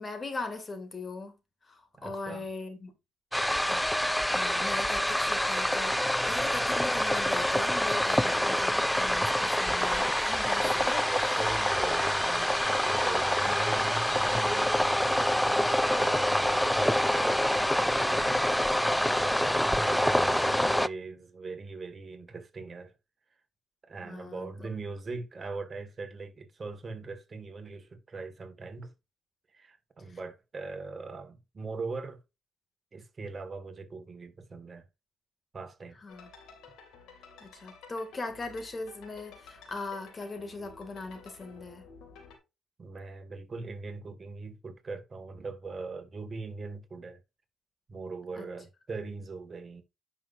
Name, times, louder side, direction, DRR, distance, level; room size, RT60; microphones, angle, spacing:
voice 1, 0.0-1.4 1.6-2.9 3.7-3.8 4.3-11.5 24.0-24.7 30.1-30.2 36.0-36.3 37.4-41.9 48.4-48.5, left 3 dB, 30° left, 2.5 m, -40 dB
voice 2, 1.9-2.5 11.1-23.0 23.8-28.9 29.5-32.2 32.9-34.8 35.5-36.0 42.8-47.2 47.9-49.8, right 3 dB, 35° right, 2.0 m, -41 dB
sound 1, 3.3-20.9, left 1 dB, 5° left, 0.3 m, -26 dB
sound 2, 36.1-42.4, left 5 dB, 90° left, 2.5 m, -52 dB
10.5 x 5.8 x 2.7 m
cardioid pair, 90°, 0 cm